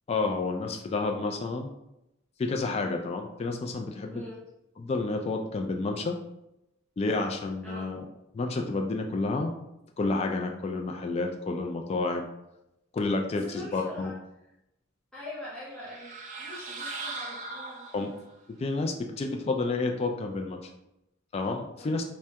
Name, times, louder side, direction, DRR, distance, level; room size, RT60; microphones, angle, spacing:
voice 1, 0.1-1.7 2.4-4.2 4.8-6.2 7.0-8.0 8.3-9.5 10.0-12.2 12.9-14.1 17.9-18.1 18.5-20.6 21.3-22.0, left 3 dB, 30° left, 4 dB, 0.3 m, -30 dB
voice 2, 4.1-4.4 7.6-7.9 13.4-14.1 15.1-16.1 16.4-17.8 21.7-22.0, left 1 dB, 5° left, -10 dB, 0.8 m, -43 dB
sound 1, 15.7-18.3, right 3 dB, 40° right, 0.4 m, -39 dB
3.4 x 3.2 x 2.8 m, 0.86 s
head